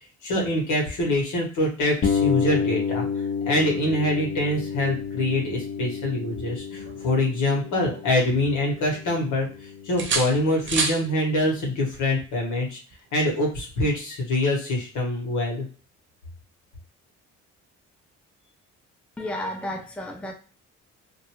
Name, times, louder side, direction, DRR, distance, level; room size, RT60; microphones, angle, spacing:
voice 1, 0.2-3.0 3.5-12.8 13.1-15.6, left 1 dB, 85° left, -1 dB, 1.3 m, -25 dB
sound 1, 2.0-11.7, left 6 dB, 40° left, 0.7 m, -30 dB
sound 2, 6.8-8.4 8.8-9.6 10.0-11.0 12.9-13.1, right 4 dB, 40° right, 0.7 m, -31 dB
voice 2, 19.2-20.3, left 1 dB, 5° left, 3 dB, 0.5 m, -32 dB
2.6 x 2.6 x 2.9 m, 0.38 s
cardioid pair, 90°, 30 cm